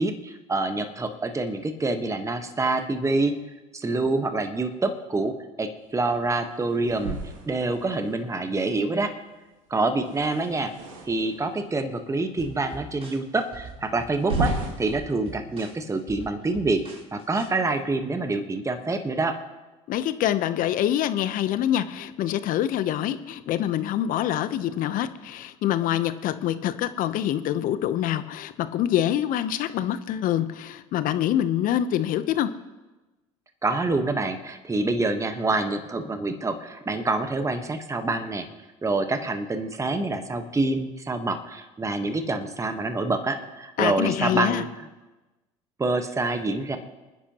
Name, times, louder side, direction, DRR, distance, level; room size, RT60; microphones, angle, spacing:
voice 1, 0.0-3.3 3.7-7.2 7.5-9.1 9.7-10.7 11.1-16.8 17.1-19.4 33.6-38.5 38.8-44.7 45.8-46.8, right 2 dB, 20° right, 7 dB, 1.4 m, -26 dB
sound 1, 6.8-8.2 10.0-11.4 12.2-12.3 12.9-13.0 14.1-15.0, right 2 dB, 90° right, 1.9 m, -32 dB
sound 2, 12.4-17.5, right 4 dB, 35° right, 3.9 m, -44 dB
voice 2, 19.9-32.5 43.8-44.6, left 11 dB, 55° left, 12 dB, 0.9 m, -25 dB
27.5 x 10.0 x 3.0 m, 1.1 s
hypercardioid pair, 75°, 16 cm